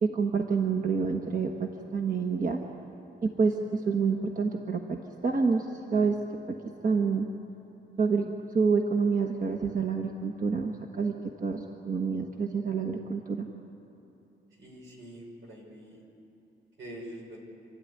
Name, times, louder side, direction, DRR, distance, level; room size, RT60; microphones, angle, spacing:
voice 1, 0.0-2.6 3.2-5.0 5.2-6.2 6.8-7.3 8.0-13.5, right 5 dB, 45° right, 3 dB, 1.3 m, -28 dB
voice 2, 14.6-16.0 16.8-17.4, right 1 dB, 80° right, 0 dB, 5.5 m, -45 dB
28.0 x 13.0 x 9.7 m, 2.9 s
wide cardioid pair, 130°, 20 cm